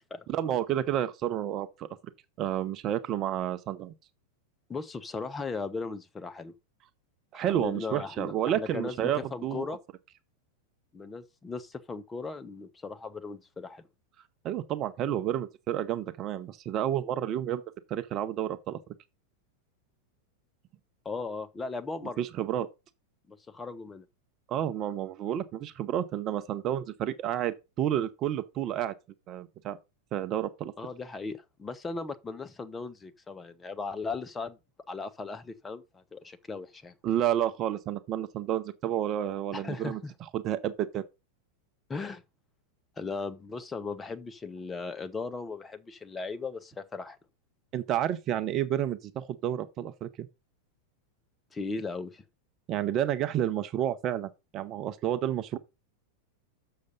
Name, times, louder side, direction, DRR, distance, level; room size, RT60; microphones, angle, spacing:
voice 1, 0.3-2.0 2.4-3.9 7.3-9.8 14.4-17.6 17.9-18.8 22.2-22.7 24.5-28.9 29.3-29.8 30.1-30.7 37.0-40.0 40.3-41.1 47.7-50.3 52.7-55.6, right 11 dB, 35° right, 0.7 m, -30 dB
voice 2, 4.7-6.5 7.3-9.8 10.9-13.9 21.0-22.3 23.3-24.1 30.8-34.6 34.9-36.9 39.5-40.1 41.9-42.2 43.0-47.2 51.5-52.2, left 4 dB, 15° left, 0.9 m, -37 dB
6.7 x 6.5 x 5.4 m
figure-of-eight pair, 90°, 0 cm